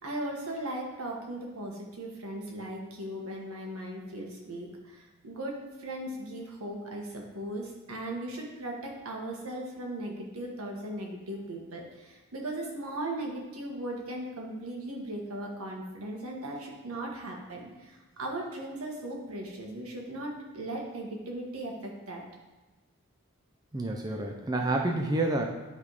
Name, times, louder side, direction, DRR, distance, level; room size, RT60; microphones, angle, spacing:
voice 1, 0.0-22.2, right 1 dB, 80° right, -1 dB, 1.5 m, -38 dB
voice 2, 23.7-25.5, right 2 dB, 20° right, 2 dB, 0.5 m, -29 dB
9.7 x 3.5 x 4.8 m, 1.2 s
head